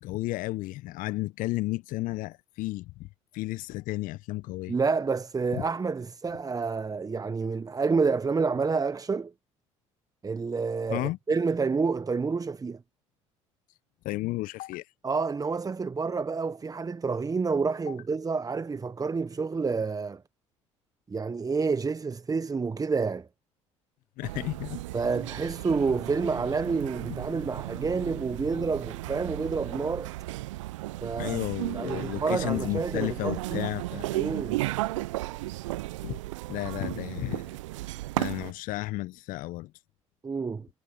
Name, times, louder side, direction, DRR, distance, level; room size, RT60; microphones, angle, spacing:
voice 1, 0.0-3.1 3.3-4.7 5.5-5.6 10.9-11.2 14.0-14.9 17.9-18.0 24.2-24.8 31.2-34.2 36.0-36.2 36.5-37.5 38.2-39.7, left 19 dB, 60° left, 1.0 m, -33 dB
voice 2, 4.7-9.3 10.2-12.8 15.0-20.2 21.1-23.3 24.9-30.1 31.0-31.4 31.7-33.6 34.2-34.6 40.2-40.7, right 4 dB, 20° right, 1.1 m, -29 dB
sound 1, 24.2-38.5, right 18 dB, 75° right, 0.8 m, -35 dB
figure-of-eight pair, 60°, 16 cm